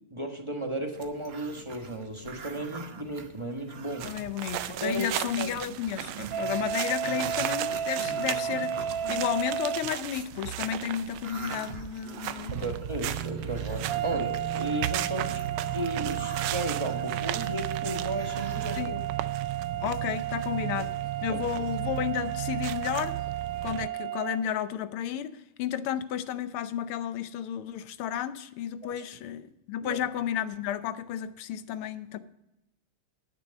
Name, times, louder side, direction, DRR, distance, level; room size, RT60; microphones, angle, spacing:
voice 1, 0.1-4.1 4.7-5.1 5.4-5.5 12.5-15.4 15.7-19.0 21.3-21.6 28.8-29.0 29.8-30.0, right 1 dB, 15° right, 3 dB, 1.1 m, -35 dB
Growling, 0.9-4.5 4.8-4.9 5.2-10.3 10.8-18.8, right 5 dB, 50° right, 0.7 m, -44 dB
voice 2, 4.0-8.8 9.1-12.8 18.7-18.9 19.8-20.9 21.2-23.2 23.6-32.2, left 10 dB, 85° left, 12 dB, 1.7 m, -32 dB
sound 1, 4.0-23.9, right 12 dB, 80° right, 1.4 m, -35 dB
sound 2, 6.3-9.9 13.9-24.4, right 10 dB, 65° right, 1.5 m, -33 dB
10.0 x 10.0 x 5.2 m, 0.88 s
omnidirectional pair, 2.3 m